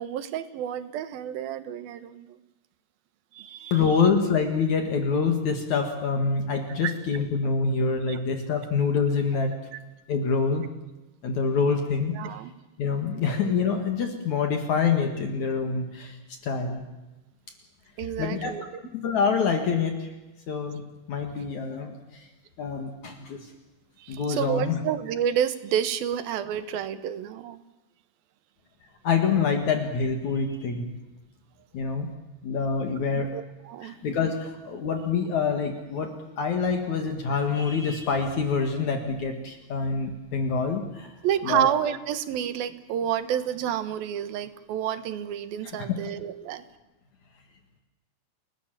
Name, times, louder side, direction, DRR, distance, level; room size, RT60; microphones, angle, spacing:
voice 1, 0.0-2.4 3.3-4.1 6.8-7.2 8.1-8.2 9.7-9.8 12.1-12.5 18.0-18.8 24.0-27.6 33.1-34.0 41.2-46.6, right 9 dB, 90° right, 11 dB, 3.1 m, -30 dB
voice 2, 3.7-9.5 10.1-10.6 11.2-12.1 12.8-16.2 16.4-16.8 18.2-18.5 18.9-20.1 20.5-20.8 21.1-22.3 22.6-23.5 24.1-24.8 29.0-30.9 31.7-32.1 32.4-33.3 33.8-41.1 41.4-41.7, left 5 dB, 60° left, 4 dB, 3.1 m, -26 dB
29.5 x 19.0 x 7.5 m, 1.1 s
omnidirectional pair, 4.1 m